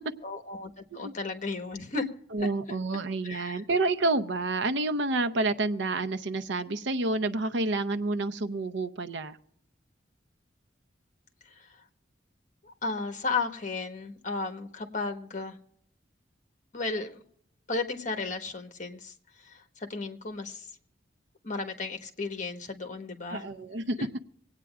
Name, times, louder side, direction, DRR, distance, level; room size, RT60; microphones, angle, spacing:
voice 1, 0.2-2.1 2.4-2.5 3.2-3.6 11.4-11.8 12.6-15.6 16.7-17.2 17.7-20.7 21.4-23.5 24.0-24.1, left 3 dB, 45° left, 6 dB, 1.3 m, -34 dB
voice 2, 2.3-9.4 23.3-24.0, right 2 dB, 80° right, 9 dB, 0.7 m, -29 dB
25.5 x 9.0 x 2.4 m, 0.70 s
head